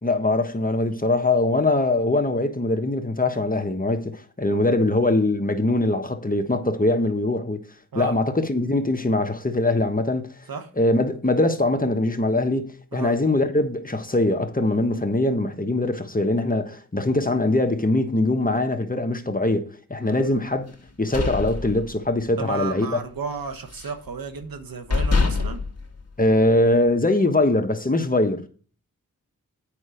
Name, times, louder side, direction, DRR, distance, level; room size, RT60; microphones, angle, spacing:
voice 1, 0.0-7.6 7.9-10.3 10.8-20.7 21.0-23.0 26.2-28.5, left 2 dB, 25° left, 1.3 m, -22 dB
voice 2, 20.0-20.4 22.4-25.6, right 5 dB, 75° right, 1.3 m, -33 dB
sound 1, 20.8-22.4 22.7-23.0 23.3-24.1 24.5-24.6 24.9-26.7, left 4 dB, 45° left, 1.8 m, -26 dB
8.8 x 5.5 x 5.0 m
cardioid pair, 45°, 35 cm